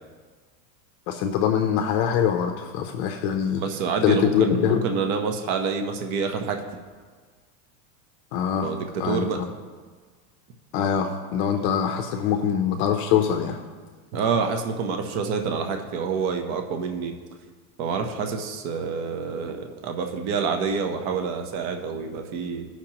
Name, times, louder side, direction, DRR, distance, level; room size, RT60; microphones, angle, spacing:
voice 1, 1.1-3.6 4.0-4.8 8.3-8.7 9.0-9.4 10.7-13.6, left 8 dB, 45° left, 5 dB, 0.6 m, -23 dB
voice 2, 3.6-6.6 8.6-9.4 14.1-17.1 17.8-22.7, right 5 dB, 40° right, 5 dB, 0.8 m, -27 dB
16.0 x 6.0 x 2.9 m, 1.5 s
supercardioid pair, 155°, 45 cm